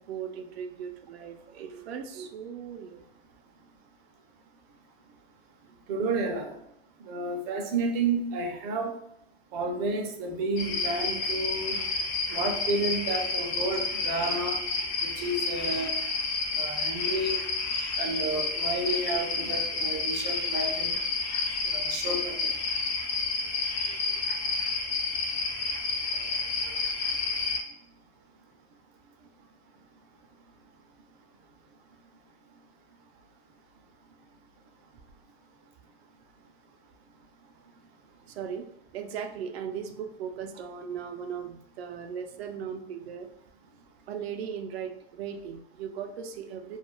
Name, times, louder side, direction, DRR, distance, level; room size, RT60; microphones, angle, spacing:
voice 1, 0.0-3.0 38.3-38.7 38.9-43.3 44.1-46.8, right 7 dB, 85° right, 6 dB, 0.5 m, -38 dB
voice 2, 5.9-6.5 7.1-8.9 9.5-11.8 12.3-14.6 15.0-15.9 16.5-17.4 18.0-20.9 21.6-22.4, right 2 dB, 30° right, 3 dB, 0.4 m, -31 dB
sound 1, 10.6-27.6, left 3 dB, 30° left, 0.5 m, -30 dB
2.3 x 2.2 x 3.0 m, 0.77 s
supercardioid pair, 145°, 30 cm